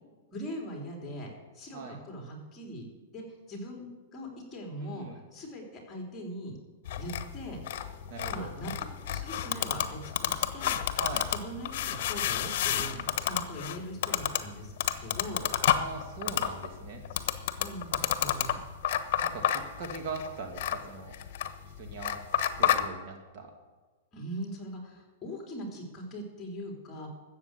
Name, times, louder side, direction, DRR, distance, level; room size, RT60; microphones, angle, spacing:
voice 1, 0.3-1.3 1.6-2.9 3.1-5.1 5.3-6.6 7.0-7.6 8.3-8.7 9.1-10.8 11.3-14.7 15.0-15.5 17.6-18.6 24.1-27.1, equal, 15° left, 0 dB, 3.5 m, -41 dB
voice 2, 4.8-5.2 8.1-8.5 11.0-11.3 15.7-17.4 19.2-21.2 21.6-22.2 22.6-23.5, right 4 dB, 45° right, 3 dB, 2.0 m, -41 dB
sound 1, 6.9-22.9, left 10 dB, 55° left, 1.1 m, -31 dB
13.0 x 7.9 x 8.2 m, 1.3 s
hypercardioid pair, 145°, 0 cm